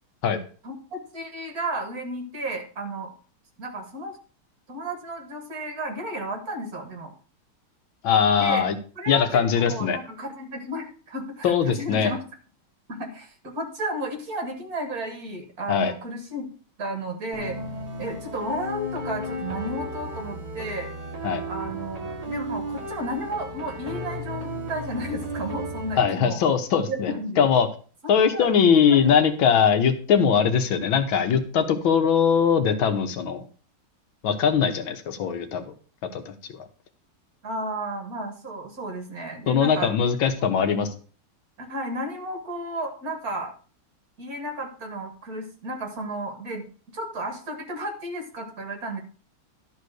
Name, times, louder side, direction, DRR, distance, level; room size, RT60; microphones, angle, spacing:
voice 1, 0.6-3.1 3.6-4.2 4.7-7.1 8.3-8.7 9.0-12.2 12.9-16.5 16.8-17.6 18.0-20.9 21.5-26.4 26.9-27.4 28.2-28.5 28.9-29.1 37.4-39.9 40.6-40.8 41.6-43.5 44.2-46.7 46.9-49.0, right 1 dB, 45° right, 4 dB, 2.1 m, -33 dB
voice 2, 8.0-8.8 9.1-10.0 11.4-12.1 15.7-15.9 21.2-21.4 26.0-27.7 28.1-33.4 34.2-35.6 36.1-36.3 39.5-40.9, left 7 dB, 70° left, 7 dB, 1.7 m, -21 dB
sound 1, 17.3-26.1, equal, 25° right, 1.0 m, -34 dB
12.0 x 4.1 x 6.3 m, 0.39 s
omnidirectional pair, 2.3 m